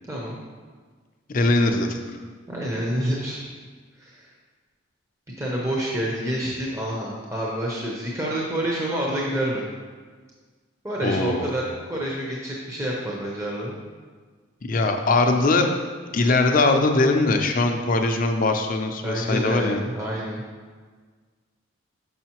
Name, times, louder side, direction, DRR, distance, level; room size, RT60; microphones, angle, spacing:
voice 1, 0.1-0.4 2.5-3.4 4.0-4.3 5.4-9.7 10.8-13.7 19.0-20.4, right 1 dB, 15° right, -4 dB, 0.6 m, -28 dB
voice 2, 1.3-2.2 11.0-11.5 14.6-15.7 16.1-19.8, left 2 dB, 40° left, 5 dB, 0.5 m, -21 dB
6.4 x 5.5 x 2.9 m, 1.5 s
head